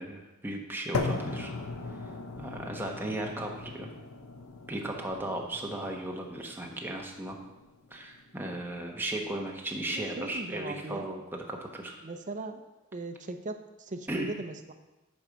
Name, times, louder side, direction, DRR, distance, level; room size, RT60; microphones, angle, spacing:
voice 1, 0.0-1.5 2.0-2.1 2.4-3.9 4.7-7.4 7.9-11.2 11.5-12.0 14.1-14.3, right 1 dB, 10° right, 0 dB, 1.0 m, -36 dB
sound 1, 0.9-9.0, left 3 dB, 80° left, 0.8 m, -38 dB
voice 2, 9.9-11.1 12.0-12.6 12.9-14.7, right 2 dB, 35° right, 7 dB, 0.6 m, -38 dB
8.7 x 4.5 x 6.3 m, 1.0 s
head